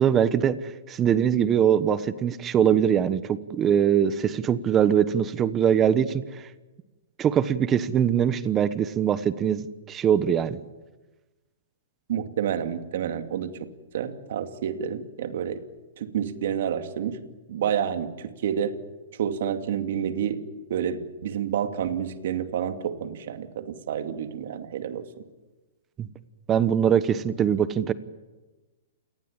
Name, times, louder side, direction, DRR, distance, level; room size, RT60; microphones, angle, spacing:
voice 1, 0.0-6.4 7.2-9.6 9.9-10.6 26.0-26.1 26.5-27.9, right 8 dB, 20° right, 15 dB, 1.2 m, -22 dB
voice 2, 12.1-13.7 13.9-15.6 16.0-17.2 17.5-18.8 19.2-20.4 20.7-25.1, right 8 dB, 65° right, 8 dB, 2.5 m, -29 dB
28.5 x 19.5 x 9.0 m, 1.2 s
hypercardioid pair, 140°, 0 cm